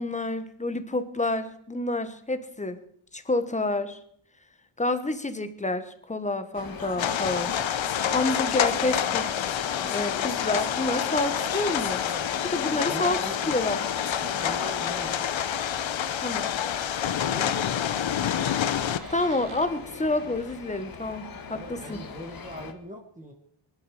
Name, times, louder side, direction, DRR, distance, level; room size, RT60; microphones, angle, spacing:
voice 1, 0.0-2.8 3.1-4.0 4.8-7.6 8.1-9.5 9.9-12.0 12.4-13.2 13.5-13.9 16.2-16.5 19.1-22.0, left 2 dB, 15° left, 10 dB, 1.2 m, -29 dB
sound 1, 6.5-22.7, left 6 dB, 45° left, 1.6 m, -39 dB
sound 2, 7.0-19.0, left 9 dB, 65° left, 1.0 m, -28 dB
voice 2, 12.8-13.6 14.2-15.1 17.3-18.3 21.5-23.3, equal, 15° right, 2 dB, 1.9 m, -40 dB
Door, 17.2-19.7 21.5-21.6 21.8-22.2, right 4 dB, 40° right, 2.5 m, -48 dB
22.5 x 11.5 x 5.0 m, 0.66 s
wide cardioid pair, 150°, 49 cm